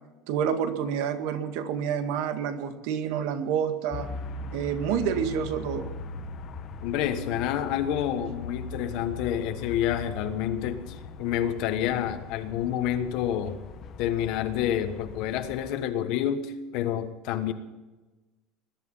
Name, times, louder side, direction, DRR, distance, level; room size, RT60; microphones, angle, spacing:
voice 1, 0.3-4.1 4.5-5.9, right 8 dB, 65° right, 7 dB, 1.9 m, -28 dB
sound 1, 3.9-15.8, left 4 dB, 35° left, 1.0 m, -40 dB
voice 2, 6.8-13.6 14.0-17.5, left 10 dB, 55° left, 8 dB, 1.3 m, -28 dB
21.0 x 12.0 x 5.7 m, 1.1 s
cardioid pair, 175°, 0 cm